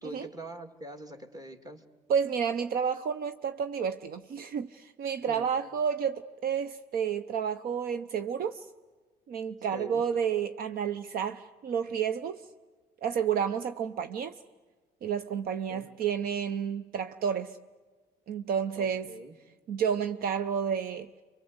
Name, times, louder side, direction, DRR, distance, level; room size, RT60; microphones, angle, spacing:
voice 1, 0.0-1.8 5.3-5.5 9.7-10.0 15.7-15.9 18.8-19.4, right 1 dB, 20° right, 2.2 m, -43 dB
voice 2, 2.1-8.6 9.3-12.4 13.0-14.3 15.0-17.6 18.3-19.1 19.7-21.1, right 7 dB, 60° right, 0.8 m, -30 dB
27.5 x 24.0 x 8.0 m
cardioid pair, 110°, 17 cm